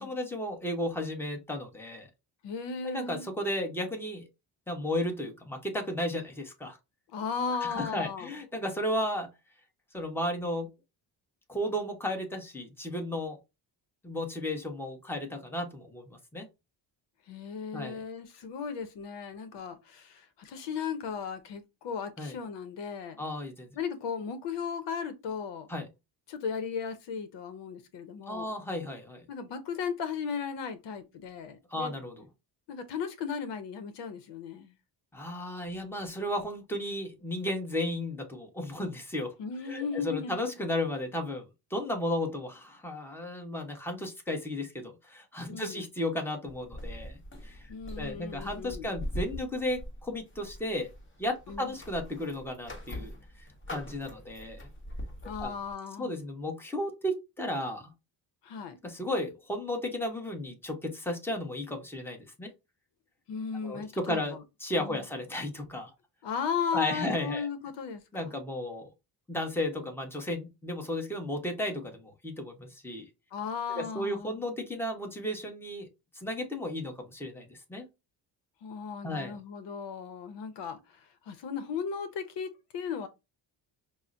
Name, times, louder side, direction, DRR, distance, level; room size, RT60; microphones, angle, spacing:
voice 1, 0.0-2.1 2.8-4.3 4.7-6.8 7.5-9.3 9.9-10.7 11.5-13.4 14.0-16.5 17.7-18.0 22.2-22.3 23.2-23.7 25.7-25.9 28.3-29.2 31.7-32.1 35.1-39.3 39.6-47.7 48.0-50.9 51.2-53.1 53.7-54.7 55.4-55.5 56.0-57.9 58.8-62.5 63.6-64.3 64.6-65.9 66.7-67.5 68.1-68.9 69.3-73.1 73.7-75.9 76.1-77.9 79.0-79.3, left 1 dB, 5° left, 1.0 m, -34 dB
voice 2, 2.4-3.3 7.1-8.3 17.3-23.2 23.7-25.7 26.3-28.5 29.3-32.0 32.7-34.7 39.4-40.5 45.5-45.8 47.7-48.9 51.5-51.7 55.2-56.2 58.4-58.8 63.3-64.4 64.8-65.0 66.2-68.3 73.3-74.4 78.6-83.1, left 6 dB, 80° left, 0.8 m, -36 dB
sound 1, 46.5-55.7, left 1 dB, 30° left, 1.4 m, -42 dB
5.4 x 2.1 x 2.5 m
cardioid pair, 115°, 42 cm